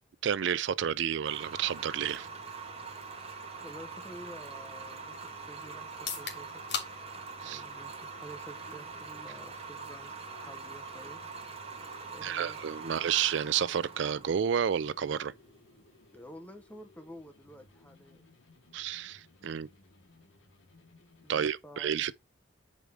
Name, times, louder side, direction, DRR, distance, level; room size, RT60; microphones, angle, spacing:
voice 1, 0.2-2.3 7.4-7.6 12.2-15.3 18.7-19.7 21.3-22.1, right 8 dB, 65° right, 0.4 m, -30 dB
sound 1, 1.2-16.2, right 4 dB, 30° right, 0.9 m, -44 dB
sound 2, 1.6-21.5, left 2 dB, 75° left, 1.3 m, -60 dB
voice 2, 3.6-6.6 7.4-11.2 12.1-12.9 16.1-18.2 21.2-22.1, equal, 10° left, 0.7 m, -50 dB
sound 3, 5.9-19.8, left 6 dB, 55° left, 1.8 m, -48 dB
6.1 x 5.1 x 3.4 m
head